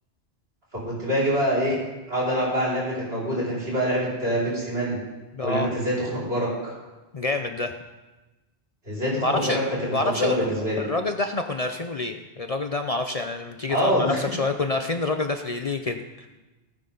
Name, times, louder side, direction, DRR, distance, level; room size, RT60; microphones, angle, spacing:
voice 1, 0.8-1.8 2.1-5.0 5.4-6.7 8.9-10.8 13.7-14.3, equal, 65° right, -7 dB, 5.6 m, -25 dB
voice 2, 5.3-5.7 7.1-7.7 9.2-9.6 9.9-10.5 10.8-16.3, left 3 dB, 40° left, 6 dB, 0.6 m, -27 dB
18.5 x 9.4 x 3.9 m, 1.1 s
omnidirectional pair, 1.1 m